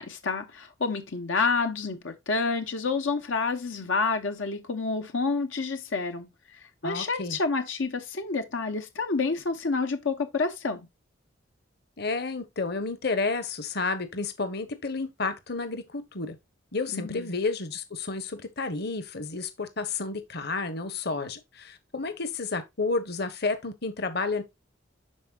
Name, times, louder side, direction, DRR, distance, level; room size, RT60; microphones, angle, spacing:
voice 1, 0.0-6.3 6.8-10.9 16.9-17.4, left 4 dB, 85° left, 0.9 m, -29 dB
voice 2, 6.8-7.4 12.0-16.4 16.7-24.4, left 3 dB, 55° left, 1.1 m, -31 dB
12.0 x 4.4 x 2.3 m
head